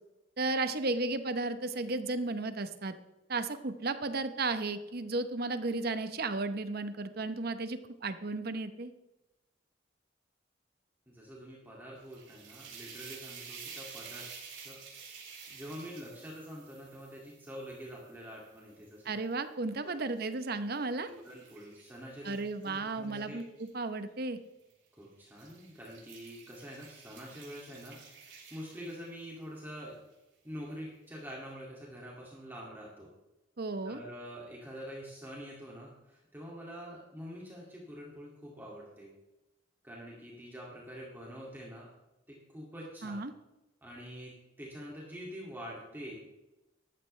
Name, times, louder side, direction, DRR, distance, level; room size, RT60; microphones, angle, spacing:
voice 1, 0.4-2.9 3.3-8.9 19.0-21.1 22.2-24.4 33.6-34.0 43.0-43.3, right 3 dB, 55° right, 10 dB, 0.9 m, -34 dB
voice 2, 11.1-14.3 14.6-14.8 15.5-19.0 19.8-20.0 21.1-22.4 22.6-23.4 25.0-28.0 28.3-29.9 30.4-33.1 33.8-39.1 39.8-41.9 42.3-43.2 43.8-46.2, equal, 10° right, -4 dB, 2.3 m, -46 dB
sound 1, 12.0-19.2 19.7-23.7 24.6-24.9 25.2-29.4, right 6 dB, 75° right, 4.3 m, -51 dB
14.0 x 12.5 x 3.3 m, 0.99 s
head